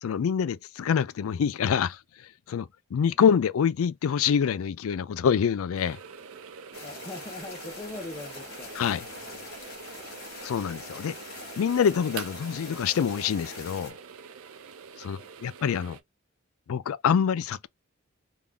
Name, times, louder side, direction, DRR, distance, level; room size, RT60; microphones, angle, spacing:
voice 1, 0.0-2.0 2.5-6.0 8.7-9.1 10.4-11.2 11.6-13.9 15.0-16.0 16.7-17.7, left 7 dB, 80° left, 0.4 m, -26 dB
sound 1, 5.7-16.0, right 6 dB, 85° right, 0.6 m, -45 dB
sound 2, 6.7-13.9, left 3 dB, 50° left, 1.4 m, -43 dB
voice 2, 6.8-8.8 9.2-9.5 15.2-15.3, left 2 dB, 20° left, 0.5 m, -41 dB
3.7 x 2.3 x 3.4 m
head